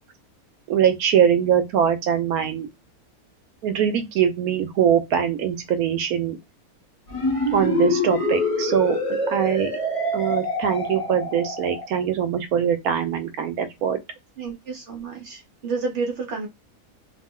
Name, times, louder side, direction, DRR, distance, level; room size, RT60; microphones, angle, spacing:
voice 1, 0.7-2.7 3.6-6.4 7.5-9.0 9.3-9.7 10.1-14.0, right 8 dB, 80° right, 1.2 m, -22 dB
sound 1, 7.1-11.9, left 1 dB, 30° left, 0.7 m, -25 dB
voice 2, 14.4-16.5, right 4 dB, 60° right, 1.1 m, -30 dB
2.9 x 2.1 x 3.6 m
omnidirectional pair, 1.5 m